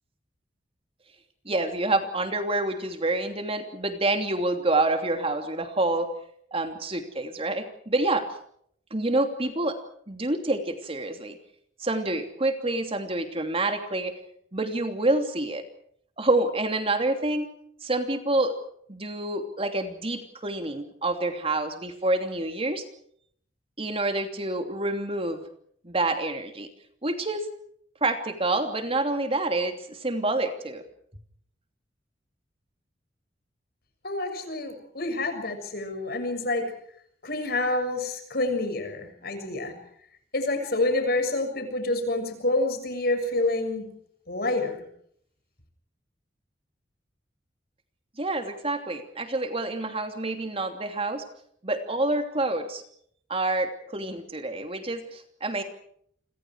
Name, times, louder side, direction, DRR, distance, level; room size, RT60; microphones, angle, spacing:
voice 1, 1.4-6.1 6.5-8.2 8.9-9.8 10.1-11.4 11.8-14.1 14.5-15.6 16.2-17.5 17.8-18.5 18.9-22.8 23.8-25.4 25.8-26.7 27.0-27.5 28.0-30.8 48.2-51.2 51.6-52.8 53.3-55.6, right 2 dB, 30° right, 6 dB, 2.9 m, -27 dB
voice 2, 34.0-36.7 37.2-39.7 40.3-43.9 44.3-44.8, left 2 dB, 60° left, 7 dB, 6.9 m, -28 dB
30.0 x 26.5 x 4.9 m, 0.66 s
head